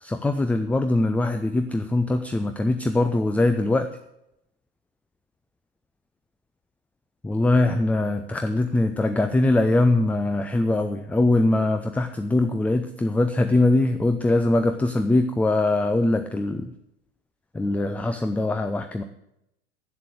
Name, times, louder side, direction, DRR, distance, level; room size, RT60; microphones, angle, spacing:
voice 1, 0.0-3.9 7.2-16.7 17.5-19.0, left 2 dB, 5° left, 8 dB, 0.4 m, -22 dB
8.0 x 7.4 x 8.5 m, 0.82 s
figure-of-eight pair, 80°, 34 cm